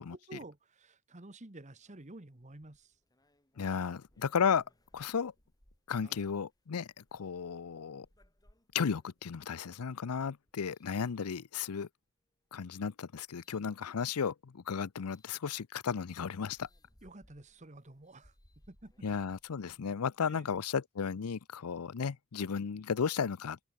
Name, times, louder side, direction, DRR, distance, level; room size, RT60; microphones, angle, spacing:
voice 1, 0.1-3.0 6.0-6.2 17.0-18.4 18.7-19.1 20.3-20.4, right 2 dB, 30° right, 1.4 m, -51 dB
sound 1, 1.8-11.8 12.4-13.7 15.1-15.3 15.9-16.0 16.2-20.4, left 1 dB, 15° left, 3.6 m, -68 dB
voice 2, 3.6-4.6 4.9-5.3 5.9-8.1 8.7-11.9 12.5-16.7 19.0-23.6, left 6 dB, 80° left, 0.6 m, -34 dB
head